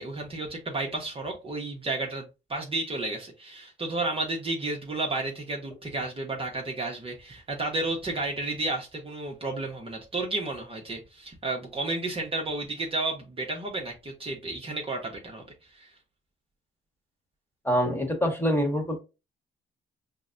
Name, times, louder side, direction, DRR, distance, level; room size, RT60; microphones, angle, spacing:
voice 1, 0.0-15.4 15.8-15.9, right 2 dB, 30° right, 0.8 m, -32 dB
voice 2, 17.6-19.0, equal, 10° left, 1.2 m, -25 dB
5.4 x 2.1 x 2.5 m
cardioid pair, 90°, 20 cm